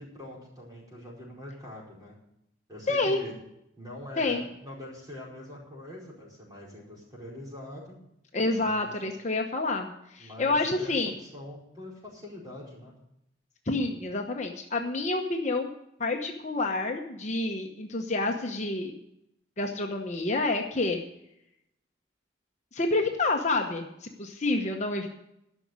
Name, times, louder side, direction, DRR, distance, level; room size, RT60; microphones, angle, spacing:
voice 1, 0.0-2.1 2.7-3.3 3.8-7.9 8.6-8.9 10.2-12.9, left 1 dB, 20° right, -4 dB, 4.7 m, -43 dB
voice 2, 2.9-3.2 4.2-4.4 8.3-11.1 13.7-15.7 16.0-18.9 19.6-21.0 22.7-25.1, left 2 dB, 35° left, 2 dB, 1.0 m, -28 dB
12.0 x 6.3 x 9.5 m, 0.80 s
head